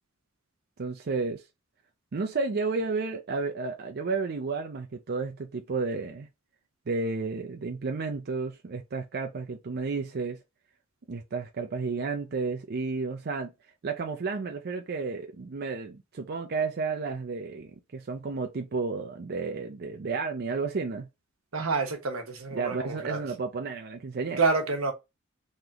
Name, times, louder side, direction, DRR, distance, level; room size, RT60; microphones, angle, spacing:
voice 1, 0.8-1.4 2.1-6.3 6.9-10.4 11.1-13.5 13.8-21.1 22.5-24.4, right 4 dB, 50° right, 0.5 m, -32 dB
voice 2, 21.5-23.2 24.4-24.9, right 4 dB, 85° right, 1.1 m, -28 dB
3.8 x 3.1 x 2.8 m
head